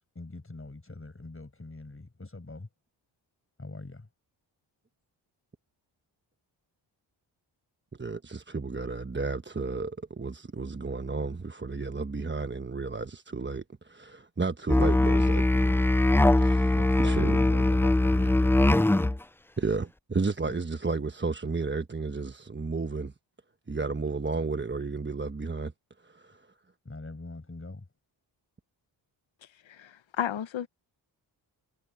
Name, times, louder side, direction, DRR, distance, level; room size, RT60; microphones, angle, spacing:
voice 1, 0.2-2.7 3.6-4.1 16.7-18.7 20.5-20.6 26.9-27.9, left 2 dB, 25° left, 7.3 m, -41 dB
voice 2, 7.9-15.8 16.4-17.4 19.6-23.1 23.7-25.7 26.0-26.4, right 4 dB, 25° right, 1.2 m, -32 dB
Musical instrument, 14.7-19.2, left 1 dB, 5° left, 0.4 m, -22 dB
voice 3, 29.7-30.7, left 9 dB, 70° left, 1.2 m, -33 dB
cardioid pair, 50°, 48 cm